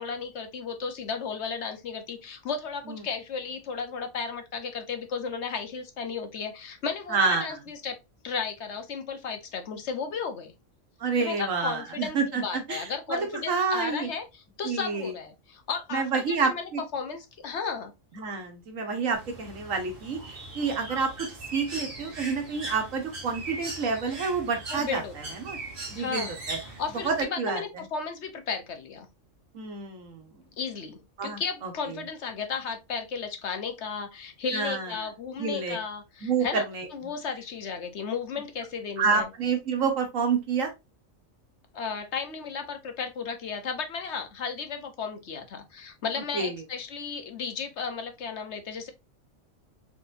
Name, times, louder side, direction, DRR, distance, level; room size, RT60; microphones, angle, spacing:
voice 1, 0.0-8.0 8.2-10.5 11.2-17.9 24.7-25.4 26.0-29.1 30.6-36.6 36.9-39.3 41.7-48.9, left 5 dB, 60° left, 1.1 m, -34 dB
voice 2, 7.1-7.4 11.0-14.1 14.6-15.1 15.9-16.8 18.1-21.1 21.5-25.0 25.4-25.6 25.9-26.6 27.0-27.6 29.5-30.3 31.2-32.0 34.5-34.9 35.4-35.8 36.2-36.9 39.0-40.7 46.3-46.6, right 5 dB, 85° right, 1.6 m, -28 dB
Bird, 19.1-27.2, right 2 dB, 45° right, 1.9 m, -39 dB
4.3 x 4.1 x 2.6 m
omnidirectional pair, 1.3 m